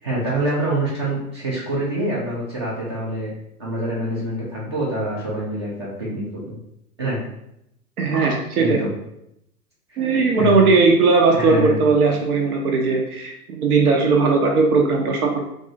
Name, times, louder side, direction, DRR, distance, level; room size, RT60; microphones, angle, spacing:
voice 1, 0.0-3.3 3.6-6.6 7.0-7.2 8.6-8.9 9.9-10.0 10.3-10.6 11.3-11.8, right 1 dB, 20° right, -5 dB, 0.3 m, -26 dB
voice 2, 8.0-8.8 10.0-13.3 13.6-15.4, right 4 dB, 70° right, 1 dB, 0.6 m, -18 dB
2.6 x 2.4 x 2.6 m, 0.80 s
figure-of-eight pair, 105°, 47 cm